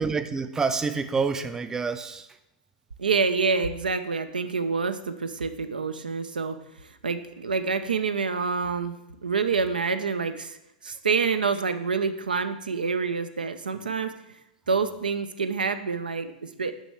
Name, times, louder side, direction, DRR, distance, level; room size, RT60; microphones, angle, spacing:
voice 1, 0.0-2.4, right 4 dB, 10° right, 11 dB, 0.3 m, -27 dB
voice 2, 3.0-6.6 6.8-9.0 9.2-10.6 10.8-14.2 14.7-16.7, right 5 dB, 90° right, 10 dB, 0.4 m, -27 dB
6.2 x 5.4 x 3.3 m, 0.85 s
hypercardioid pair, 105°, 5 cm